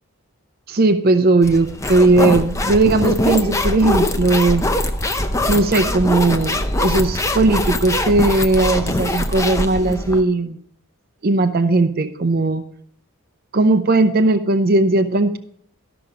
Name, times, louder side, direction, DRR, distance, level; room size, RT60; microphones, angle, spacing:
voice 1, 0.7-4.6 5.5-10.6 11.2-12.6 13.5-15.4, right 2 dB, 45° right, 9 dB, 0.6 m, -17 dB
sound 1, 1.4-10.2, left 1 dB, 15° left, 0.5 m, -22 dB
13.0 x 6.0 x 4.9 m, 0.66 s
head